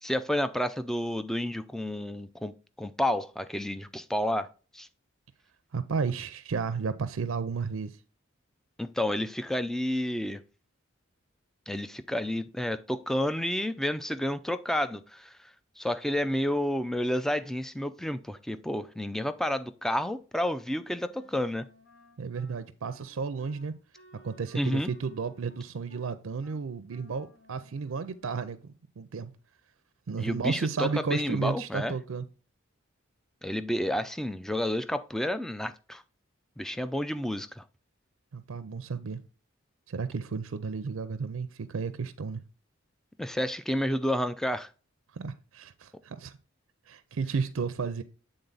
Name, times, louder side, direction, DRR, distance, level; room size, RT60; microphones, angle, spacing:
voice 1, 0.0-2.5 2.8-4.5 4.7-4.9 8.8-10.4 11.7-15.4 15.8-21.7 24.6-24.9 30.2-31.9 33.4-36.0 36.6-37.6 43.2-44.7, left 1 dB, ahead, 0.3 m, -30 dB
voice 2, 5.7-7.9 22.2-23.7 24.2-29.3 30.1-32.3 38.3-39.2 39.9-42.4 45.1-46.4 46.9-48.0, right 5 dB, 85° right, 0.5 m, -33 dB
Wind instrument woodwind instrument, 20.8-28.4, equal, 55° left, 1.5 m, -58 dB
8.1 x 3.8 x 3.9 m
head